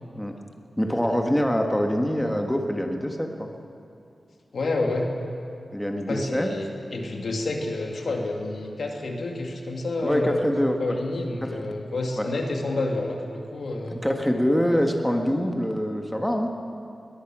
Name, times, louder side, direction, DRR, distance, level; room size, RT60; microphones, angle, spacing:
voice 1, 0.8-3.5 5.7-6.5 10.0-11.0 11.4-11.6 12.2-12.3 13.9-16.5, equal, 5° left, 3 dB, 1.7 m, -24 dB
voice 2, 4.5-5.1 6.1-10.4 10.8-14.0, left 2 dB, 80° left, 1 dB, 2.6 m, -29 dB
22.0 x 20.0 x 6.2 m, 2.5 s
wide cardioid pair, 95°, 0 cm